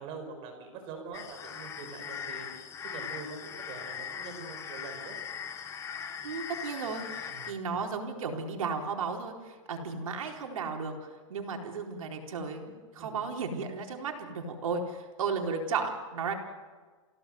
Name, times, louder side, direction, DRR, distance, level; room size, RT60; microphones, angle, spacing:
voice 1, 0.0-5.2 7.3-8.0 9.7-9.9 13.0-13.2, right 4 dB, 30° right, 4 dB, 5.3 m, -44 dB
sound 1, 1.1-7.5, left 7 dB, 15° left, 1.2 m, -40 dB
voice 2, 6.2-16.3, right 5 dB, 85° right, 2 dB, 4.2 m, -34 dB
27.5 x 16.5 x 7.9 m, 1.4 s
supercardioid pair, 160°, 17 cm